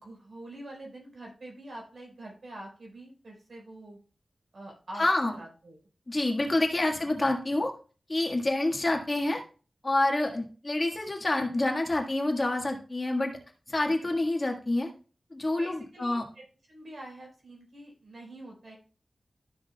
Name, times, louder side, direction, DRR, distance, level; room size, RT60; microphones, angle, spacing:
voice 1, 0.0-4.0 4.5-5.8 13.8-14.2 15.5-18.8, right 1 dB, 70° right, -1 dB, 4.2 m, -46 dB
voice 2, 5.0-5.3 6.1-7.7 8.1-9.4 9.8-13.4 13.7-14.9 15.3-16.2, left 2 dB, 35° left, 1 dB, 1.6 m, -27 dB
12.5 x 6.5 x 2.3 m, 0.37 s
wide cardioid pair, 105°, 0 cm